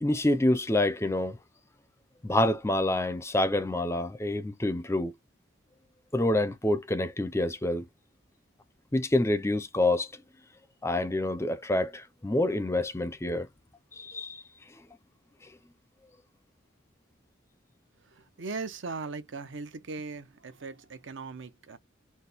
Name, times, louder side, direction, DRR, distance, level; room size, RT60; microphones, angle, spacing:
voice 1, 0.0-1.4 2.2-5.1 6.1-7.8 8.9-10.1 10.8-13.5 13.9-14.4, left 1 dB, 15° left, 0.4 m, -27 dB
voice 2, 18.1-21.8, right 4 dB, 65° right, 0.7 m, -39 dB
4.3 x 2.1 x 3.4 m
head